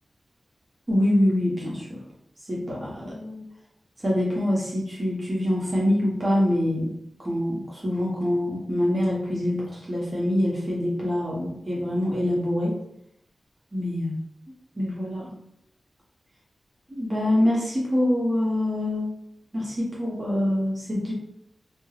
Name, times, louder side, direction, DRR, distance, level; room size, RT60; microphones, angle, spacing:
voice 1, 0.9-2.0 2.5-3.4 4.0-6.9 7.2-12.7 13.7-14.2 14.8-15.3 16.9-19.1 19.5-21.1, left 1 dB, 35° right, -5 dB, 0.8 m, -25 dB
2.2 x 2.2 x 3.2 m, 0.75 s
cardioid pair, 65°, 0 cm